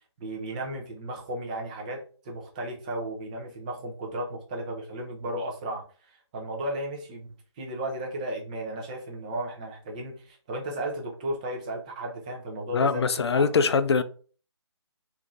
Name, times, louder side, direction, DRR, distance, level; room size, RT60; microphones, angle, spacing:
voice 1, 0.2-7.3 7.6-13.6, right 1 dB, 15° right, 0.5 m, -34 dB
voice 2, 12.7-14.0, left 5 dB, 60° left, 0.4 m, -22 dB
3.7 x 2.6 x 3.0 m
figure-of-eight pair, 160°, 15 cm